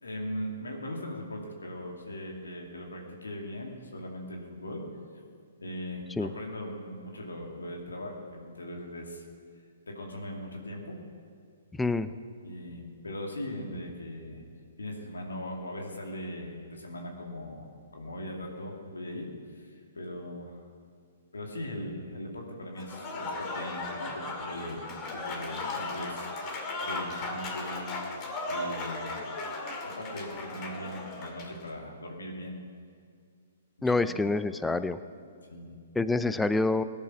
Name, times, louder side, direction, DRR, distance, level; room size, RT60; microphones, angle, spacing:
voice 1, 0.0-4.8 5.6-9.2 9.9-11.0 12.4-14.4 14.8-17.7 17.9-20.6 21.3-24.8 25.1-26.3 26.8-27.9 28.5-29.2 29.8-32.6 33.8-34.2 35.5-35.8, left 1 dB, 80° left, 1 dB, 2.5 m, -39 dB
voice 2, 11.8-12.1 33.8-35.0 36.0-36.8, left 3 dB, 5° left, 13 dB, 0.6 m, -26 dB
Applause / Crowd, 22.8-31.6, left 2 dB, 30° left, 2.4 m, -36 dB
18.0 x 10.5 x 6.1 m, 2.2 s
figure-of-eight pair, 120°, 0 cm